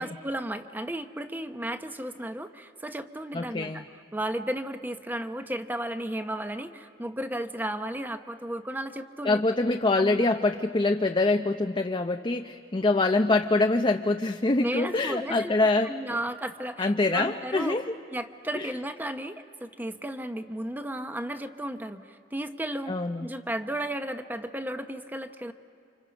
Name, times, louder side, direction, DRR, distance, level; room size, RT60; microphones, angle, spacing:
voice 1, 0.0-3.8 4.1-9.4 10.0-10.3 14.6-15.5 15.8-17.8 18.1-25.5, right 1 dB, 10° right, 8 dB, 0.9 m, -34 dB
voice 2, 3.3-3.8 9.2-15.9 16.8-17.9 18.5-18.7 22.9-23.3, left 2 dB, 30° left, 4 dB, 0.6 m, -25 dB
29.5 x 27.0 x 5.3 m, 2.6 s
head